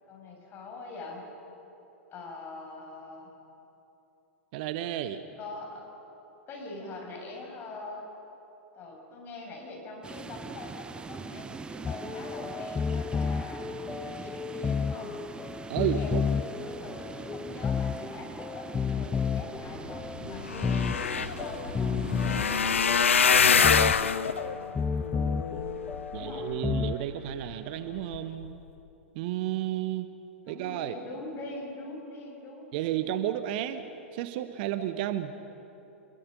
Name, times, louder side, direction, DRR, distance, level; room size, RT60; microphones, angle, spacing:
voice 1, 0.1-1.2 2.1-3.3 5.4-5.9 6.5-8.1 8.8-15.1 15.9-22.0 22.2-23.9 26.1-26.5 30.4-33.0, left 2 dB, 35° left, 0 dB, 7.1 m, -43 dB
voice 2, 4.5-5.2 15.7-16.2 26.1-28.6 29.1-30.1 30.5-31.0 32.7-33.9 34.1-35.3, right 12 dB, 50° right, 11 dB, 1.1 m, -32 dB
sound 1, 10.0-22.8, right 4 dB, 15° right, 0.8 m, -43 dB
sound 2, 11.8-27.0, left 6 dB, 15° left, 0.4 m, -32 dB
sound 3, 20.2-26.5 27.1-27.5 28.0-28.2 28.4-28.5, left 6 dB, 80° left, 0.6 m, -26 dB
27.5 x 22.0 x 5.4 m, 3.0 s
figure-of-eight pair, 95°, 7 cm